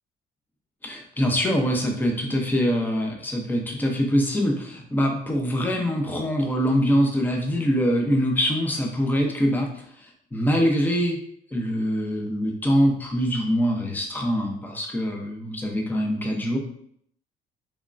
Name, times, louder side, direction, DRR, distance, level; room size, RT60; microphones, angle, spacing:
voice 1, 0.8-11.2 11.5-16.6, equal, 10° left, 1 dB, 0.6 m, -24 dB
3.5 x 3.2 x 2.5 m, 0.66 s
cardioid pair, 110°, 17 cm